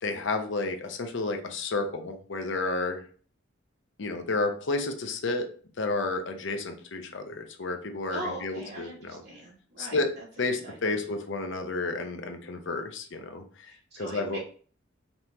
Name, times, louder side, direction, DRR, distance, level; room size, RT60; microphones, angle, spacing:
voice 1, 0.0-3.0 4.0-5.5 5.8-9.2 9.8-10.1 10.4-14.4, left 3 dB, 65° left, 6 dB, 0.6 m, -31 dB
voice 2, 8.1-10.2 10.6-11.1 13.7-14.4, right 1 dB, 55° right, -4 dB, 2.2 m, -41 dB
5.3 x 2.9 x 2.9 m, 0.43 s
head